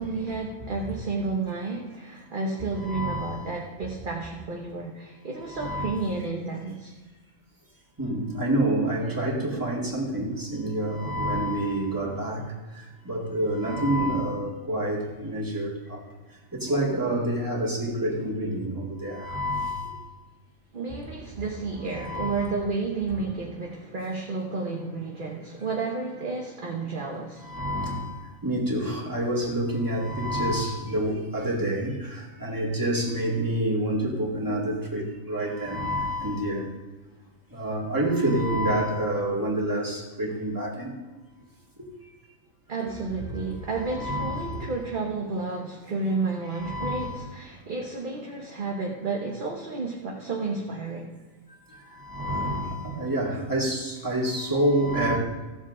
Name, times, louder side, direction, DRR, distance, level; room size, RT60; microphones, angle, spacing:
voice 1, 0.0-6.9 20.7-27.4 42.7-51.1, right 3 dB, 40° right, -1 dB, 1.1 m, -31 dB
voice 2, 2.8-3.5 5.5-6.0 8.0-16.0 16.5-20.1 21.9-22.5 27.4-36.7 37.5-40.9 41.8-41.9 43.3-43.4 43.9-44.7 46.5-47.2 51.7-55.2, right 1 dB, 15° right, -4 dB, 2.1 m, -28 dB
15.0 x 7.2 x 3.7 m, 1.3 s
omnidirectional pair, 1.4 m